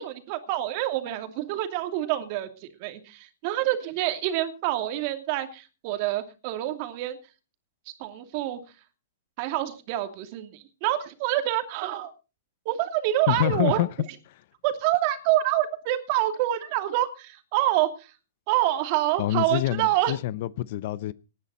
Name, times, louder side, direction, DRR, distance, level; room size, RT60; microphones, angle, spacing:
voice 1, 0.0-7.2 8.0-8.6 9.4-12.1 12.6-13.8 14.6-18.1 18.5-20.2, right 14 dB, 45° right, 2.6 m, -27 dB
voice 2, 13.3-13.9 14.3-14.4 19.2-21.1, left 14 dB, 55° left, 0.7 m, -26 dB
19.0 x 10.5 x 4.2 m
hypercardioid pair, 130°, 0 cm